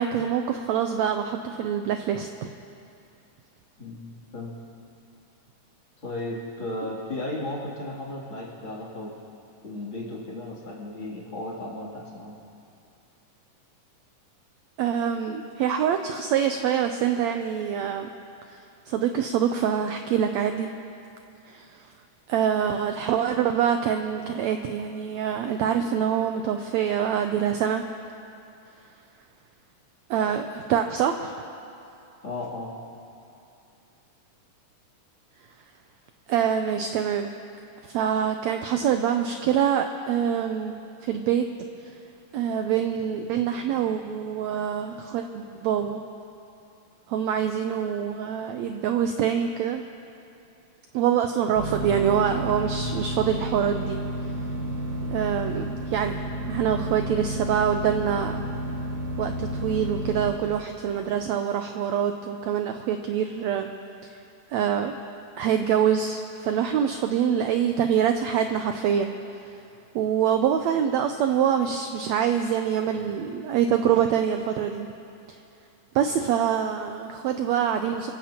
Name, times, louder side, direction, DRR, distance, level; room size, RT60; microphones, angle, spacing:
voice 1, 0.0-2.5 14.8-18.1 18.5-18.6 18.9-20.7 21.5-21.8 22.3-27.9 30.1-31.3 36.3-37.3 37.9-40.7 41.0-41.5 42.3-46.0 47.1-49.8 50.9-54.0 55.1-56.2 56.5-58.5 59.2-63.7 64.5-65.0 65.4-69.1 69.9-74.9 75.9-78.1, right 8 dB, 85° right, 6 dB, 1.5 m, -25 dB
voice 2, 3.8-4.5 6.0-9.1 9.6-12.4 32.2-32.8, left 2 dB, 40° left, -5 dB, 3.4 m, -35 dB
sound 1, 51.6-60.3, right 1 dB, 50° right, 1.6 m, -31 dB
29.0 x 15.0 x 2.9 m, 2.7 s
omnidirectional pair, 3.8 m